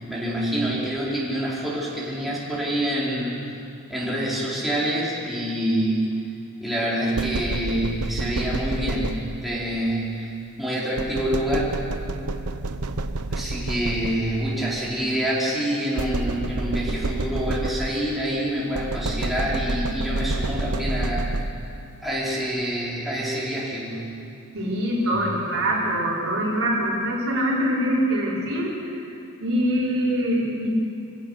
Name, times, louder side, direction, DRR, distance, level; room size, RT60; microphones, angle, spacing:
voice 1, 0.1-3.4 3.9-6.2 6.6-10.3 10.6-11.7 13.3-21.3 22.0-24.1, right 1 dB, ahead, -7 dB, 4.7 m, -26 dB
sound 1, 7.2-9.6 11.0-14.5 16.0-18.2 18.7-21.8, right 2 dB, 85° right, 1.0 m, -29 dB
voice 2, 24.5-29.1 29.4-30.7, equal, 65° right, -5 dB, 5.2 m, -24 dB
27.5 x 16.5 x 6.7 m, 2.6 s
head